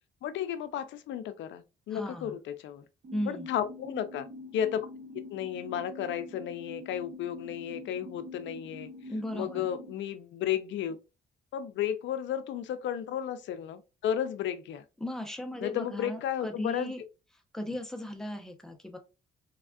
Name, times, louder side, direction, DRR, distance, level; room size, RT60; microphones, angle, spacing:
voice 1, 0.2-2.9 3.3-4.3 4.5-4.9 5.3-8.9 9.3-11.0 11.5-14.8 15.6-16.9, left 9 dB, 70° left, 0.5 m, -33 dB
voice 2, 1.9-2.4 3.1-3.5 9.1-9.7 15.0-17.0 17.5-19.0, left 1 dB, ahead, 0.6 m, -36 dB
sound 1, 3.0-9.9, left 2 dB, 50° right, 0.8 m, -46 dB
3.4 x 2.3 x 2.2 m
cardioid pair, 90°, 20 cm